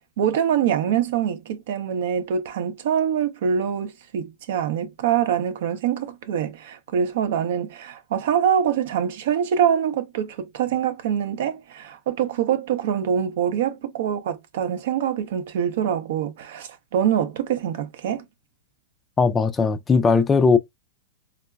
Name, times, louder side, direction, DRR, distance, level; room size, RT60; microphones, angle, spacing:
voice 1, 0.2-18.2, right 8 dB, 65° right, 0.5 m, -24 dB
voice 2, 19.2-20.6, left 4 dB, 20° left, 0.3 m, -18 dB
3.7 x 2.0 x 2.2 m
hypercardioid pair, 115°, 0 cm